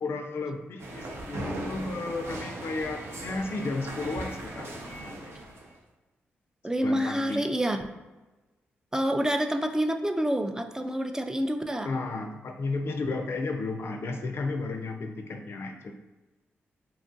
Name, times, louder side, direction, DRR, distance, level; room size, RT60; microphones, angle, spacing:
voice 1, 0.0-5.3 6.8-7.5 11.9-15.9, left 3 dB, 60° left, 5 dB, 0.4 m, -33 dB
sound 1, 0.8-5.7, right 1 dB, 65° right, 0.6 m, -38 dB
voice 2, 6.6-7.9 8.9-11.9, equal, 15° right, 6 dB, 0.3 m, -27 dB
2.8 x 2.4 x 2.6 m, 1.1 s
supercardioid pair, 50°, 5 cm